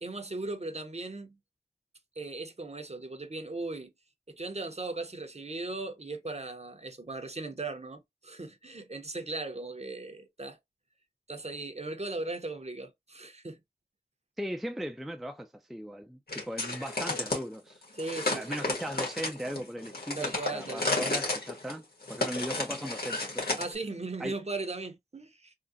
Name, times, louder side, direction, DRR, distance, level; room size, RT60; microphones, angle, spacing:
voice 1, 0.0-1.4 2.2-3.9 4.3-10.6 11.3-13.6 18.0-18.6 20.2-21.0 23.6-25.5, right 3 dB, 40° right, 0.7 m, -38 dB
voice 2, 14.4-17.8 18.3-23.6 24.2-24.3, equal, ahead, 0.4 m, -38 dB
sound 1, 16.3-17.4 18.0-23.7, left 2 dB, 65° left, 1.5 m, -32 dB
3.7 x 2.1 x 2.6 m
wide cardioid pair, 45°, 17 cm